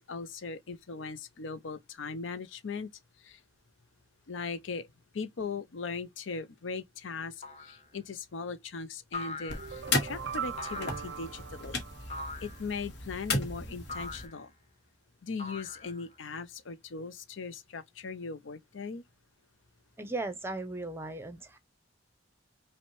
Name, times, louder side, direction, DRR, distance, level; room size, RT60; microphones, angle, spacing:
voice 1, 0.1-2.9 3.2-3.4 4.3-4.9 5.1-7.3 7.6-11.8 12.4-14.5 15.2-19.0, left 4 dB, 75° left, 0.6 m, -39 dB
sound 1, 7.4-7.8 9.1-9.9 10.6-11.2 12.1-12.6 13.9-14.4 15.4-16.1, left 2 dB, 35° left, 1.2 m, -41 dB
sound 2, 9.5-14.3, left 2 dB, 55° left, 1.2 m, -35 dB
sound 3, 9.6-12.6, right 8 dB, 65° right, 0.4 m, -41 dB
voice 2, 20.0-21.6, right 2 dB, 10° right, 0.6 m, -37 dB
5.5 x 2.1 x 3.1 m
head